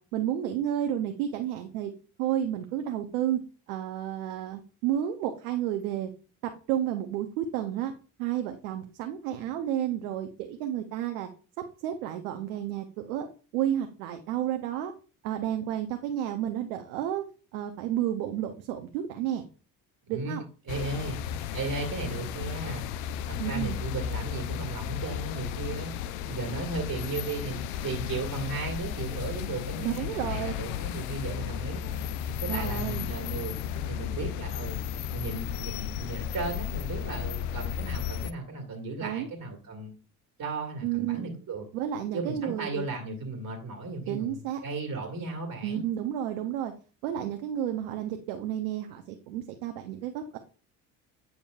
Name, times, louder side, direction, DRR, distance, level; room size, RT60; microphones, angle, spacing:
voice 1, 0.0-1.9 2.2-3.4 3.7-6.1 6.7-7.9 8.2-11.3 11.8-13.3 13.5-14.9 15.2-17.2 17.5-19.4 20.1-20.4 23.4-23.8 29.8-30.5 32.4-33.1 39.0-39.3 40.8-41.3 41.7-42.9 44.1-44.6 45.6-46.7 47.0-50.4, right 11 dB, 85° right, 5 dB, 0.8 m, -31 dB
sound 1, 20.7-38.3, left 9 dB, 80° left, 0.6 m, -34 dB
voice 2, 20.7-21.2 21.5-22.9 23.3-25.9 26.2-32.0 32.4-33.6 33.9-34.8 35.1-39.9 40.4-41.7 42.1-45.8, right 3 dB, 40° right, 2 dB, 1.9 m, -35 dB
8.5 x 5.1 x 2.4 m, 0.37 s
hypercardioid pair, 70°, 43 cm